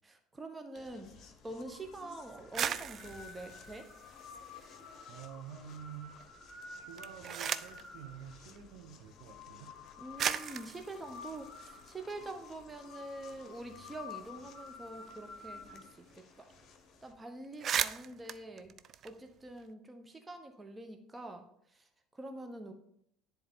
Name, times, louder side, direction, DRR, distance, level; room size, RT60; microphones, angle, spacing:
voice 1, 0.0-3.8 10.0-16.2 17.0-18.7 19.0-21.4 22.2-22.7, right 2 dB, 20° right, 5 dB, 1.0 m, -45 dB
sound 1, 0.8-17.1, left 4 dB, 45° left, 0.9 m, -51 dB
X-Shot Chaos Meteor Magazine Sounds, 2.4-5.0 5.3-6.0 6.8-7.9 8.9-9.0 9.8-9.9 10.2-12.5 12.9-13.0 13.2-16.2 16.5-16.7 17.1-17.2 17.4-19.7, right 8 dB, 45° right, 0.4 m, -39 dB
voice 2, 5.1-6.2 6.5-9.7, right 8 dB, 65° right, 4 dB, 1.0 m, -49 dB
10.0 x 3.8 x 3.7 m, 0.71 s
figure-of-eight pair, 65°, 0 cm